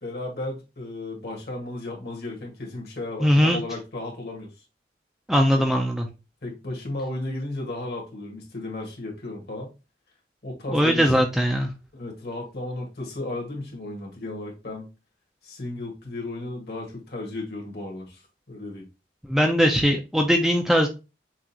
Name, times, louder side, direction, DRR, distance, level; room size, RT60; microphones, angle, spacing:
voice 1, 0.0-4.5 5.5-5.6 6.4-9.7 10.4-11.1 11.9-14.9 15.4-18.2 18.5-18.9, left 2 dB, 60° left, 1.6 m, -34 dB
voice 2, 3.2-3.6 5.3-6.1 10.7-11.7 19.3-20.9, equal, ahead, 0.4 m, -20 dB
6.0 x 2.4 x 2.8 m
head